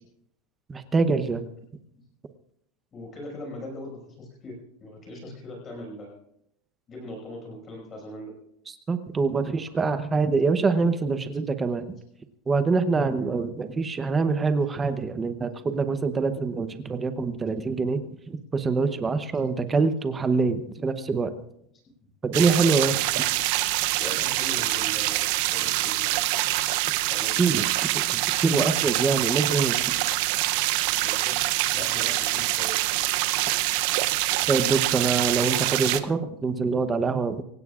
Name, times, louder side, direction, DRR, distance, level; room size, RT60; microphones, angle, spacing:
voice 1, 0.7-1.4 8.9-11.9 12.5-18.0 18.3-21.3 22.2-23.0 27.4-29.8 34.5-37.4, right 4 dB, 10° right, 9 dB, 0.8 m, -25 dB
voice 2, 2.9-4.5 4.8-6.2 6.9-8.3 13.1-13.4 14.6-14.7 19.3-19.4 22.5-22.7 24.0-25.2 25.5-26.3 27.1-27.4 31.0-31.4 31.7-32.8, left 1 dB, 20° left, 0 dB, 5.7 m, -40 dB
sound 1, 22.3-36.0, right 17 dB, 50° right, 0.6 m, -25 dB
26.0 x 16.5 x 2.5 m, 0.74 s
supercardioid pair, 175°, 0 cm